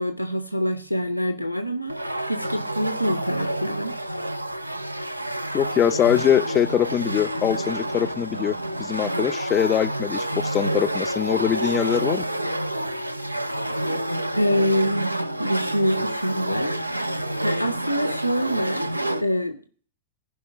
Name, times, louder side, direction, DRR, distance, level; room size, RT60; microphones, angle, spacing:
voice 1, 0.0-3.9 14.4-15.1 15.4-18.9 19.2-19.6, equal, 90° left, 0.6 m, -26 dB
sound 1, 1.9-19.2, right 1 dB, 85° right, 0.5 m, -28 dB
voice 2, 5.5-12.2, left 10 dB, 30° left, 0.4 m, -23 dB
14.5 x 5.4 x 6.3 m
figure-of-eight pair, 90°, 0 cm